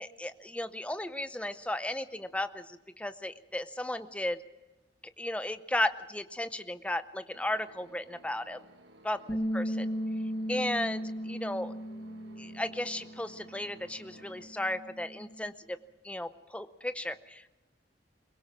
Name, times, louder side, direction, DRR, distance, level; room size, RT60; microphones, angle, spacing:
voice 1, 0.0-4.4 5.2-8.6 9.0-9.2 9.5-9.8 10.5-11.8 12.4-15.8 16.0-17.5, left 1 dB, 5° left, 11 dB, 0.6 m, -35 dB
sound 1, 7.3-14.5, right 1 dB, 75° right, 1.5 m, -56 dB
Bass guitar, 9.3-15.5, equal, 25° left, 1.5 m, -37 dB
22.5 x 20.5 x 6.1 m, 1.1 s
head